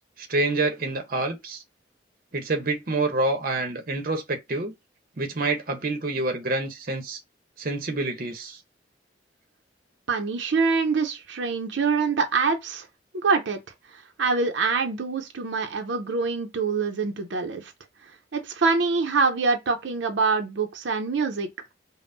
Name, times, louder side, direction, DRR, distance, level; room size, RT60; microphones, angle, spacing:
voice 1, 0.2-1.6 2.3-4.7 5.2-7.2 7.6-8.6, right 2 dB, 50° right, 0.8 m, -27 dB
voice 2, 10.1-12.9 13.1-13.6 13.9-17.7 18.0-21.5, right 4 dB, 80° right, 0.6 m, -25 dB
5.2 x 2.1 x 2.6 m
head